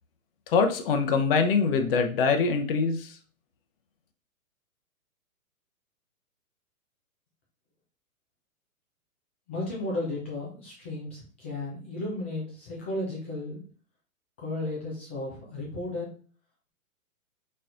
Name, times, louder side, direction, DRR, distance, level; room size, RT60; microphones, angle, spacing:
voice 1, 0.5-3.1, left 5 dB, 40° left, 6 dB, 0.8 m, -24 dB
voice 2, 9.5-13.6 14.4-16.1, left 2 dB, 10° left, -4 dB, 0.3 m, -34 dB
4.3 x 4.1 x 2.5 m, 0.40 s
hypercardioid pair, 130°, 43 cm